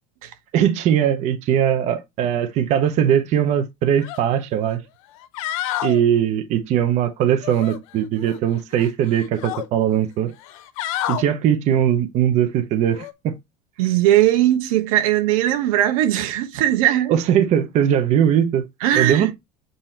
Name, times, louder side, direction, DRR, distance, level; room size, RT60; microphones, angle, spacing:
voice 1, 0.5-4.8 5.8-10.3 11.1-13.3 17.1-18.7 19.0-19.3, right 9 dB, 40° right, 0.7 m, -20 dB
sound 1, 4.0-4.2 4.6-4.7 5.2-6.0 7.4-8.4 8.7-9.7 10.4-11.2 12.9-13.1, left 13 dB, 80° left, 0.9 m, -29 dB
voice 2, 13.8-17.2 18.8-19.3, right 13 dB, 90° right, 1.2 m, -19 dB
7.7 x 2.8 x 4.3 m
cardioid pair, 150°, 17 cm